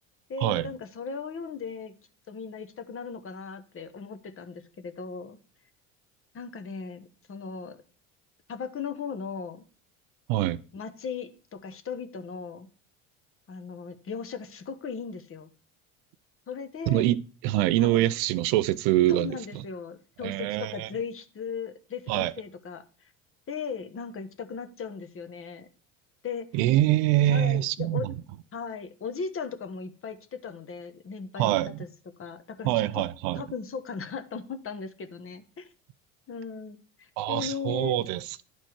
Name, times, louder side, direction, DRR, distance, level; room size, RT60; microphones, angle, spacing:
voice 1, 0.3-1.9 2.3-5.4 6.3-7.8 8.5-9.6 10.7-12.7 13.5-15.5 16.5-17.0 17.8-18.1 19.1-23.1 23.5-25.7 26.2-26.5 27.3-28.1 28.5-31.9 32.2-33.0 33.3-35.7 36.3-38.1, left 5 dB, 35° left, 1.0 m, -37 dB
voice 2, 16.9-17.2 17.4-19.3 20.2-20.9 22.1-22.3 26.5-28.1 31.4-31.8 32.6-33.4 37.2-38.4, right 14 dB, 70° right, 0.6 m, -24 dB
10.5 x 4.5 x 4.5 m
supercardioid pair, 85°, 40 cm